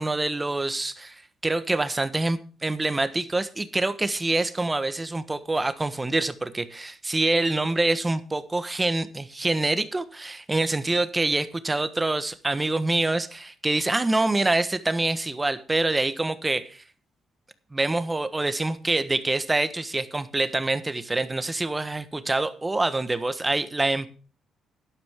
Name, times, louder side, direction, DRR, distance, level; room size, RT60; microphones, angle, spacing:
voice 1, 0.0-16.8 17.7-24.1, right 2 dB, 15° right, 12 dB, 1.3 m, -26 dB
12.0 x 11.5 x 3.6 m, 0.38 s
cardioid pair, 90°, 0 cm